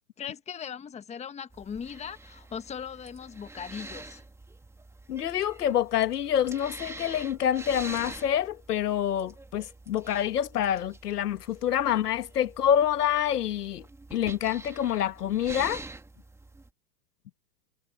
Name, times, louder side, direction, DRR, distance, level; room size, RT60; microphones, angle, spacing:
voice 1, 0.2-4.2, left 7 dB, 15° left, 1.4 m, -39 dB
sound 1, 1.5-16.7, right 2 dB, 5° right, 1.9 m, -46 dB
voice 2, 5.1-13.8 14.1-15.8, left 10 dB, 80° left, 2.0 m, -27 dB
hypercardioid pair, 125°, 46 cm